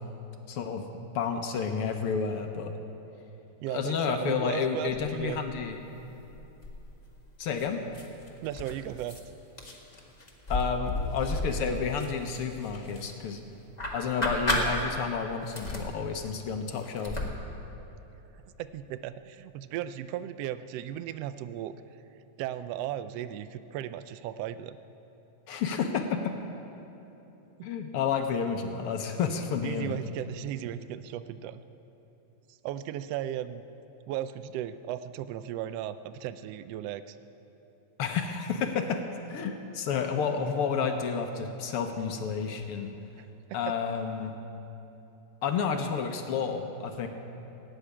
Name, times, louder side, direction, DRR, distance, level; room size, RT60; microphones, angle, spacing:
voice 1, 0.5-2.7 3.7-5.8 7.4-7.8 10.5-13.4 13.9-17.1 25.5-26.3 27.6-30.0 38.0-39.0 39.3-42.9 43.5-44.3 45.4-47.1, left 6 dB, 70° left, 5 dB, 1.4 m, -30 dB
voice 2, 3.6-5.4 8.4-9.2 18.6-21.7 22.4-24.8 27.6-27.7 29.6-31.6 32.5-33.6 34.1-37.2 43.2-43.3, right 11 dB, 85° right, 13 dB, 1.4 m, -36 dB
sound 1, 4.9-5.7 6.0-7.1 7.6-9.2 9.6-13.4 13.8-15.2 15.4-17.3, left 1 dB, 25° left, 1.0 m, -34 dB
16.5 x 8.2 x 9.7 m, 3.0 s
omnidirectional pair, 3.4 m